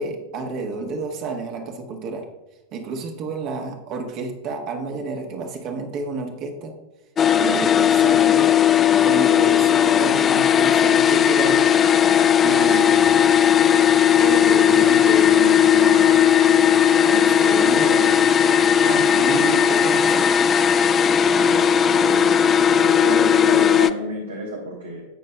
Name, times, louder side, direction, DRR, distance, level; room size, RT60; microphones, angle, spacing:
voice 1, 0.0-2.3 2.7-6.7 7.4-8.5 9.0-11.7 12.4-13.1 13.8-13.9 14.2-16.2 17.1-18.2 19.2-20.3, right 4 dB, 40° right, 3 dB, 1.5 m, -30 dB
sound 1, 7.2-23.9, left 8 dB, 25° left, 0.4 m, -17 dB
voice 2, 18.8-19.4 21.2-22.3 22.6-25.0, right 2 dB, 65° right, 0 dB, 1.6 m, -31 dB
17.5 x 6.5 x 2.3 m, 0.99 s
figure-of-eight pair, 90°, 0 cm